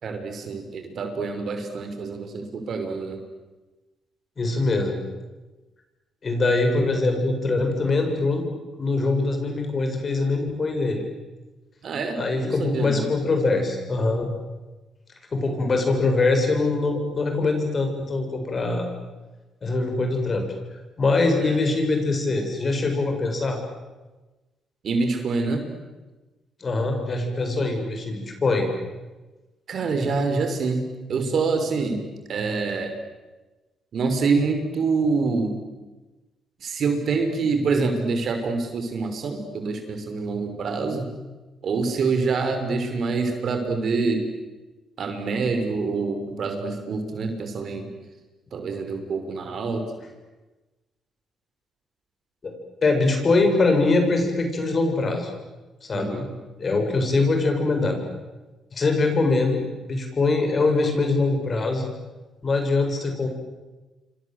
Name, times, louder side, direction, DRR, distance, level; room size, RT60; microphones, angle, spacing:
voice 1, 0.0-3.2 11.8-12.2 12.4-13.1 21.4-21.6 24.8-25.6 29.7-32.9 33.9-35.6 36.6-41.1 41.6-44.3 45.0-47.9 48.5-49.9 55.9-56.3, right 4 dB, 55° right, 6 dB, 5.5 m, -26 dB
voice 2, 4.4-5.0 6.2-8.5 8.8-11.0 12.2-14.3 15.3-18.9 19.6-20.5 21.0-23.6 26.6-28.7 52.4-52.5 52.8-55.3 55.8-56.2 56.6-58.0 58.7-59.6 59.9-61.9 62.4-63.3, left 3 dB, 40° left, 4 dB, 7.6 m, -23 dB
28.0 x 25.5 x 8.2 m, 1.2 s
cardioid pair, 90°, 0 cm